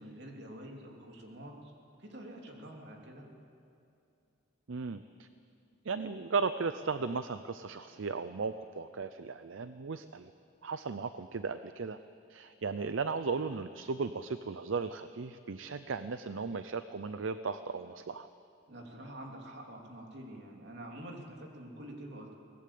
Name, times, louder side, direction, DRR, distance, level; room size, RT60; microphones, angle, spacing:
voice 1, 0.0-1.7 2.0-3.3 18.7-22.4, right 1 dB, 60° right, 1 dB, 3.2 m, -47 dB
voice 2, 4.7-5.3 5.8-10.3 10.6-12.0 12.3-18.3, right 4 dB, 75° right, 11 dB, 0.6 m, -36 dB
23.0 x 19.0 x 8.6 m, 2.6 s
head